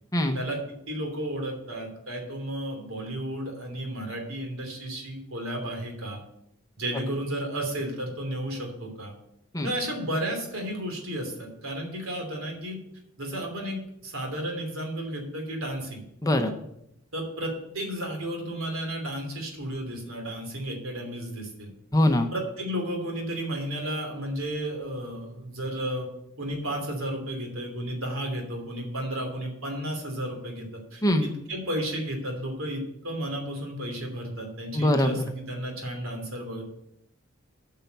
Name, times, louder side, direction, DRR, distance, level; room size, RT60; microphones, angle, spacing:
voice 1, 0.9-6.2 6.8-9.1 9.6-12.8 13.2-16.0 17.1-21.7 22.3-26.1 26.4-36.6, right 1 dB, 75° right, 2 dB, 3.0 m, -33 dB
voice 2, 16.2-16.5 21.9-22.3 31.0-31.3 34.7-35.3, left 1 dB, 15° left, 6 dB, 0.8 m, -23 dB
8.8 x 5.7 x 8.0 m, 0.79 s
head